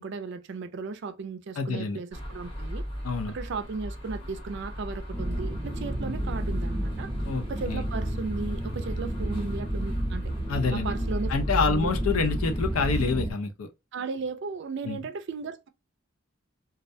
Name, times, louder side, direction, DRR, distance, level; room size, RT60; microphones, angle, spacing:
voice 1, 0.0-2.8 3.3-7.1 7.5-10.2 10.7-11.3 11.7-11.9 13.9-15.7, right 4 dB, 55° right, 0.3 m, -35 dB
voice 2, 1.6-2.0 3.0-3.3 7.2-7.9 10.5-10.9 11.3-13.7 14.8-15.0, left 4 dB, 85° left, 0.5 m, -27 dB
sound 1, 2.1-13.0, equal, 25° left, 0.8 m, -36 dB
sound 2, 5.1-13.3, right 1 dB, 10° right, 0.6 m, -31 dB
2.3 x 2.1 x 2.5 m
head